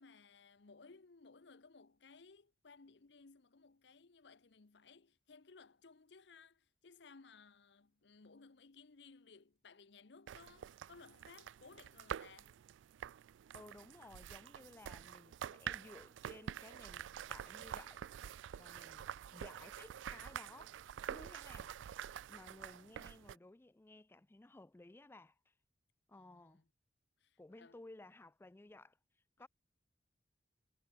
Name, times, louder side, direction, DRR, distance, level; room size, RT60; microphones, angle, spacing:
voice 1, 0.0-12.6 26.1-26.6 27.2-27.8 29.4-29.5, left 4 dB, 65° left, 0.8 m, -61 dB
sound 1, 10.3-23.4, right 9 dB, 80° right, 0.3 m, -47 dB
voice 2, 13.5-20.8 21.1-21.8 22.3-25.5 26.1-26.6 27.4-29.5, left 2 dB, 10° left, 0.4 m, -57 dB
head